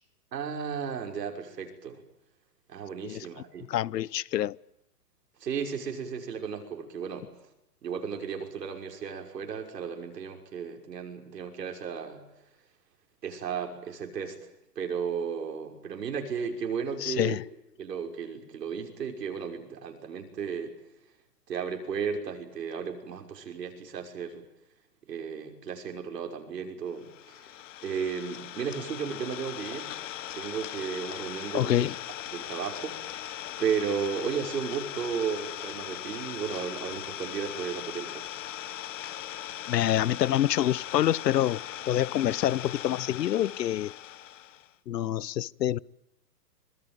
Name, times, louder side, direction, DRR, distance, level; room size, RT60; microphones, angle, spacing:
voice 1, 0.3-2.0 2.7-3.7 5.4-7.3 7.8-12.2 13.2-14.4 14.8-17.4 17.8-20.7 21.5-24.4 25.1-27.4 27.8-30.1 30.3-31.9 32.3-33.0 33.6-38.3, right 6 dB, 80° right, 6.0 m, -34 dB
voice 2, 3.7-4.6 17.0-17.4 31.5-32.0 39.7-43.9 44.9-45.8, left 12 dB, 80° left, 0.9 m, -27 dB
Idling, 27.0-44.7, left 12 dB, 50° left, 1.3 m, -39 dB
26.0 x 21.0 x 9.1 m
hypercardioid pair, 160°, 48 cm